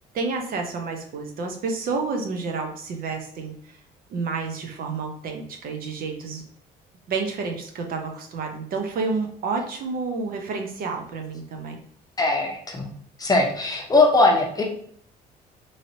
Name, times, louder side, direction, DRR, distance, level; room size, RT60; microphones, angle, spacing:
voice 1, 0.1-3.8 4.1-6.4 7.1-11.8, right 4 dB, 60° right, 3 dB, 0.7 m, -30 dB
voice 2, 12.2-12.9 13.2-14.6, left 2 dB, 20° left, 0 dB, 0.7 m, -20 dB
3.1 x 2.7 x 2.7 m, 0.63 s
cardioid pair, 110°, 17 cm